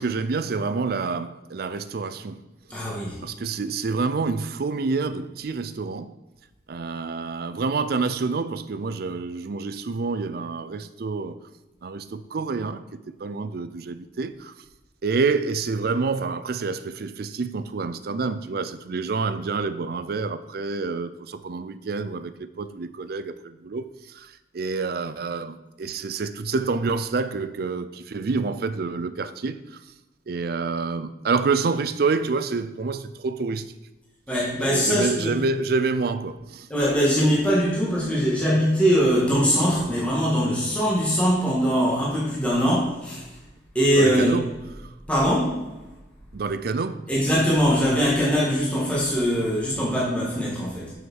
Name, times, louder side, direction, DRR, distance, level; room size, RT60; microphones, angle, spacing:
voice 1, 0.0-2.5 3.2-6.2 6.7-11.4 11.8-14.5 15.0-29.8 30.3-33.7 34.6-36.7 43.9-44.5 46.3-47.1, right 4 dB, 60° right, 0.4 m, -28 dB
voice 2, 2.7-3.2 34.3-35.4 36.7-43.2 43.7-44.4 45.1-45.6 47.1-50.9, equal, 10° left, 2.0 m, -22 dB
7.1 x 6.5 x 4.7 m
head